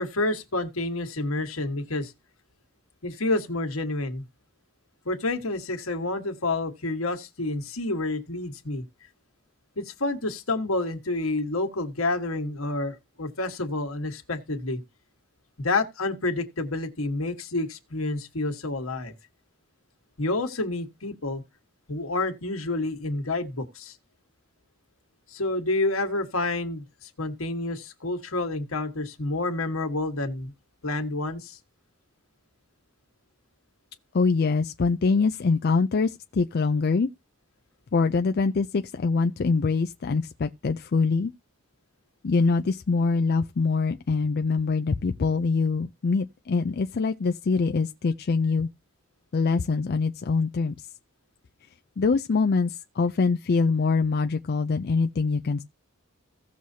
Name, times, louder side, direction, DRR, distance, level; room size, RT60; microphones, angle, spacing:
voice 1, 0.0-2.1 3.0-4.2 5.0-8.8 9.8-14.8 15.6-19.1 20.2-21.4 21.9-23.9 25.3-30.5 30.8-31.6, left 2 dB, 85° left, 1.5 m, -29 dB
voice 2, 34.1-37.1 37.9-41.3 42.2-48.7 49.3-50.8 52.0-55.6, left 4 dB, 50° left, 0.4 m, -24 dB
16.5 x 6.3 x 2.8 m
head